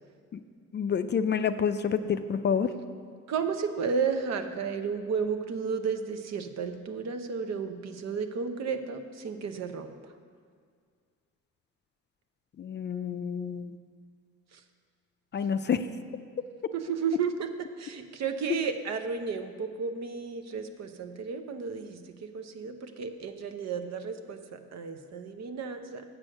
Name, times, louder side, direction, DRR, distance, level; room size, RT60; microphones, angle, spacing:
voice 1, 0.7-2.7 12.6-13.8 15.3-15.9, left 7 dB, 35° left, 10 dB, 0.4 m, -28 dB
voice 2, 3.3-10.0 14.5-14.6 16.7-26.0, right 6 dB, 60° right, 7 dB, 0.8 m, -33 dB
7.7 x 6.3 x 6.4 m, 2.1 s
cardioid pair, 90°, 30 cm